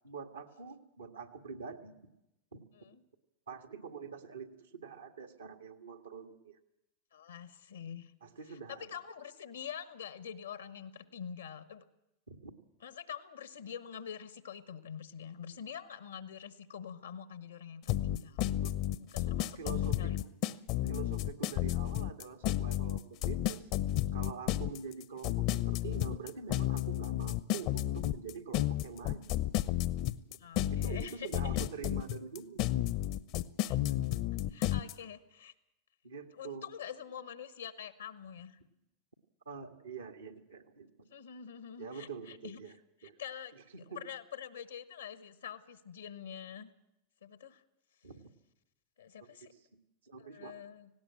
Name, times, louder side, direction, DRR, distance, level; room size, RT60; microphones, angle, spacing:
voice 1, 0.0-1.9 2.5-2.6 3.5-4.5 4.8-6.6 8.2-8.9 12.3-12.5 18.6-18.7 19.2-20.4 20.9-23.6 24.1-29.5 30.7-32.6 36.0-36.6 39.4-40.9 41.8-42.7 43.0-43.1 43.7-44.0 48.0-48.2 50.0-50.5, right 5 dB, 90° right, 5 dB, 1.8 m, -45 dB
voice 2, 7.1-8.1 8.5-11.8 12.8-18.5 19.0-20.2 30.4-31.6 33.6-34.0 34.5-35.5 36.3-38.6 41.1-42.7 43.0-43.5 43.9-46.7 47.2-47.6 49.0-49.5 50.2-50.9, left 8 dB, 85° left, 13 dB, 1.3 m, -46 dB
sound 1, 17.9-34.9, left 14 dB, 55° left, 0.8 m, -32 dB
18.5 x 17.0 x 8.7 m, 0.88 s
hypercardioid pair, 90°, 0 cm